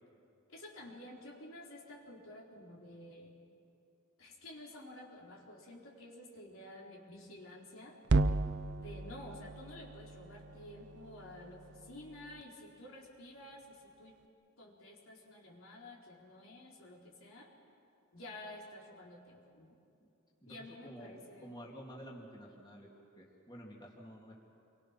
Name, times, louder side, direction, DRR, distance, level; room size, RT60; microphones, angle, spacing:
voice 1, 0.5-3.3 4.2-8.0 8.8-14.2 14.6-17.5 18.1-19.7 20.5-21.6, left 1 dB, 70° left, -3 dB, 4.3 m, -51 dB
sound 1, 8.0-12.4, right 2 dB, 55° right, 0.7 m, -35 dB
voice 2, 20.4-21.1 21.4-22.9 23.2-24.4, equal, 20° left, -3 dB, 3.0 m, -50 dB
29.0 x 23.5 x 6.0 m, 2.5 s
head